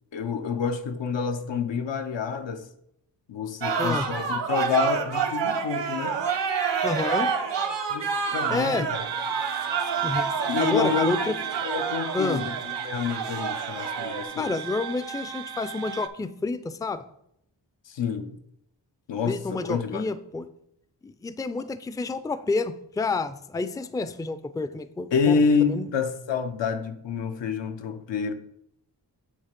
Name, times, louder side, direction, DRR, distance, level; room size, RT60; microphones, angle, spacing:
voice 1, 0.1-2.7 3.3-6.2 7.9-9.0 10.5-11.3 11.6-14.5 17.9-18.4 19.1-20.0 25.1-28.3, left 6 dB, 80° left, 0.8 m, -28 dB
sound 1, 3.6-14.2, right 6 dB, 75° right, 1.1 m, -28 dB
voice 2, 3.8-4.1 6.8-7.3 8.5-8.9 10.0-10.3 10.6-11.4 12.1-12.5 14.4-17.0 19.3-20.5 21.0-25.9, left 3 dB, 10° left, 0.4 m, -29 dB
sound 2, 8.9-16.1, right 9 dB, 60° right, 0.7 m, -35 dB
8.4 x 3.2 x 5.2 m
cardioid pair, 55°, 44 cm